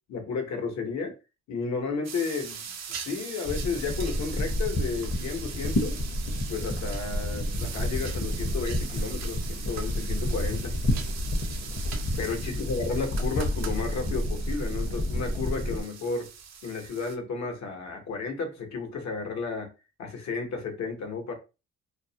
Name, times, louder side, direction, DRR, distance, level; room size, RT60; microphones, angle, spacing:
voice 1, 0.1-1.1 1.5-2.6 3.0-6.0 6.5-10.7 12.2-16.3 16.6-19.7 20.0-21.3, left 4 dB, 65° left, 0.9 m, -32 dB
sound 1, 2.0-17.2, right 7 dB, 60° right, 0.5 m, -41 dB
sound 2, 3.5-15.8, left 1 dB, 30° left, 0.7 m, -30 dB
2.4 x 2.0 x 2.7 m
cardioid pair, 90°, 30 cm